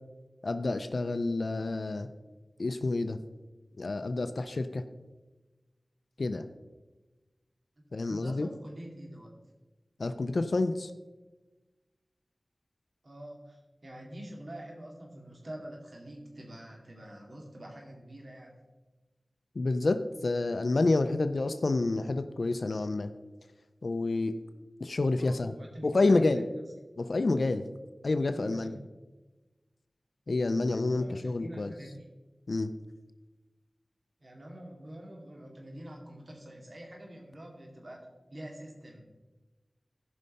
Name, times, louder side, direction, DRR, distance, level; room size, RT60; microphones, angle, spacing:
voice 1, 0.4-2.1 2.6-3.2 3.8-4.8 6.2-6.4 7.9-8.5 10.0-10.9 19.6-23.1 23.8-24.3 24.8-25.5 25.8-26.4 27.0-27.7 28.0-28.8 30.3-31.7 32.5-32.7, left 3 dB, 70° left, 10 dB, 0.5 m, -28 dB
voice 2, 7.8-9.4 13.0-18.5 25.2-26.6 28.2-28.8 30.9-32.1 34.2-39.0, right 1 dB, 55° right, 0 dB, 2.3 m, -46 dB
14.5 x 5.5 x 5.4 m, 1.2 s
wide cardioid pair, 75°, 0 cm